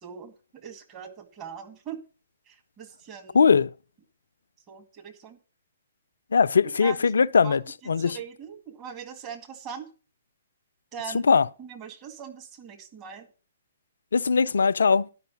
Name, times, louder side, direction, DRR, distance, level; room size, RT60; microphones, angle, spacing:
voice 1, 0.0-2.0 2.5-3.4 4.7-5.4 6.6-7.1 7.4-7.6 7.8-9.9 10.9-11.3 11.6-13.3, right 7 dB, 25° right, 1.9 m, -41 dB
voice 2, 3.3-3.7 6.3-8.2 11.3-11.5 14.1-15.1, left 5 dB, 75° left, 0.4 m, -20 dB
11.5 x 5.5 x 6.9 m
figure-of-eight pair, 125°, 0 cm